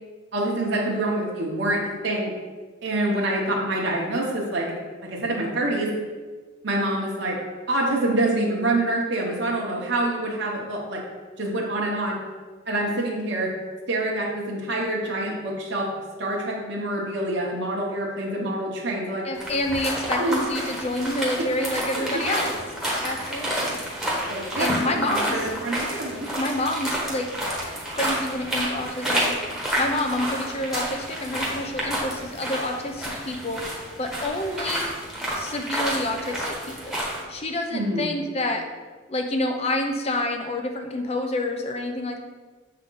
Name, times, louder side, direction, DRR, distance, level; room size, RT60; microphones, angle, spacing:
voice 1, 0.3-2.3 2.8-4.7 5.0-5.9 6.6-7.4 7.7-11.0 11.4-12.2 12.7-13.5 13.9-15.9 16.2-19.3 20.2-20.4 21.9-22.0 24.3-26.3 37.7-38.1, right 1 dB, 55° right, -3 dB, 1.0 m, -26 dB
voice 2, 19.2-22.5 23.0-23.8 24.6-25.4 26.4-27.3 27.9-29.4 29.8-33.6 34.0-34.9 35.3-37.0 37.3-38.6 39.1-42.2, left 1 dB, 30° left, 4 dB, 0.6 m, -28 dB
sound 1, 19.3-37.2, equal, ahead, 1.1 m, -29 dB
7.1 x 3.8 x 3.8 m, 1.4 s
head